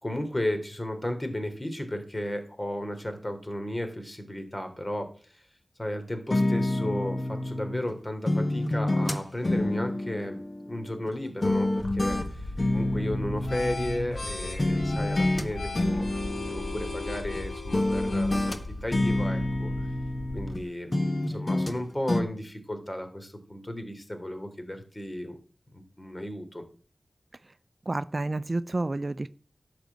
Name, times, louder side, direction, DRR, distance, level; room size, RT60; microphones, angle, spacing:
voice 1, 0.0-5.4 5.8-10.4 10.7-16.1 16.5-18.4 18.8-19.7 20.3-21.0 21.3-25.4 25.7-26.6, left 1 dB, 25° left, 7 dB, 3.3 m, -34 dB
sound 1, 6.3-7.9 8.3-11.1 11.4-14.3 14.6-15.5 15.7-17.4 17.7-20.6 20.9-21.8 22.1-22.2, left 1 dB, 45° left, 1.6 m, -28 dB
sound 2, 11.8-20.6, left 2 dB, 75° left, 3.4 m, -37 dB
voice 2, 27.9-29.3, right 2 dB, 45° right, 14 dB, 0.5 m, -29 dB
11.5 x 5.1 x 8.2 m, 0.42 s
cardioid pair, 40°, 0 cm